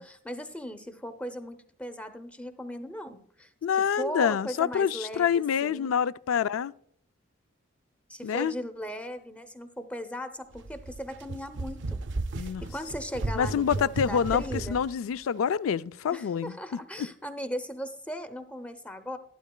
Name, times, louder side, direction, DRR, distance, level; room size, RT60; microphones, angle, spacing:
voice 1, 0.0-3.5 3.9-6.0 8.1-12.0 12.4-14.8 16.1-19.2, equal, 5° left, 0.6 m, -38 dB
voice 2, 3.6-6.7 8.2-8.5 12.4-12.6 13.3-16.5 17.0-17.1, left 7 dB, 80° left, 0.3 m, -27 dB
sound 1, 10.5-14.9, right 2 dB, 60° right, 0.5 m, -35 dB
12.0 x 12.0 x 2.2 m
head